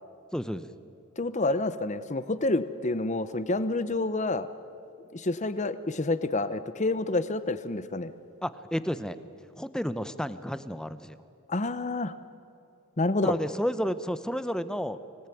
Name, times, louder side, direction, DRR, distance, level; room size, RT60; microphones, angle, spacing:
voice 1, 0.3-0.7 8.4-9.2 9.6-11.2 13.2-15.0, equal, 5° left, 13 dB, 0.7 m, -31 dB
voice 2, 1.2-4.5 5.1-8.1 11.5-12.1 13.0-13.3, left 2 dB, 35° left, 13 dB, 0.8 m, -28 dB
25.5 x 18.5 x 9.2 m, 2.7 s
head